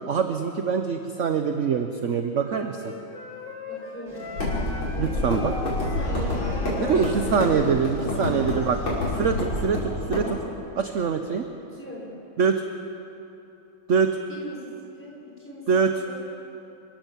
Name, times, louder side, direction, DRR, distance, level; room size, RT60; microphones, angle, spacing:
voice 1, 0.1-2.9 5.0-5.5 6.8-8.8 9.2-10.4 10.7-11.4 12.4-12.6 13.9-14.2 15.7-15.9, right 6 dB, 50° right, 6 dB, 1.0 m, -24 dB
Wind instrument woodwind instrument, 2.4-7.9, left 3 dB, 65° left, 3.2 m, -39 dB
voice 2, 3.7-4.5 4.9-5.4 5.9-7.6 8.1-8.8 11.7-12.2 14.3-15.7 16.0-16.3, equal, 5° left, -4 dB, 5.8 m, -40 dB
sound 1, 4.1-9.4, left 1 dB, 35° left, 3.4 m, -43 dB
sound 2, 4.4-10.2, left 2 dB, 80° left, 6.3 m, -28 dB
27.5 x 16.5 x 7.6 m, 2.9 s
omnidirectional pair, 2.2 m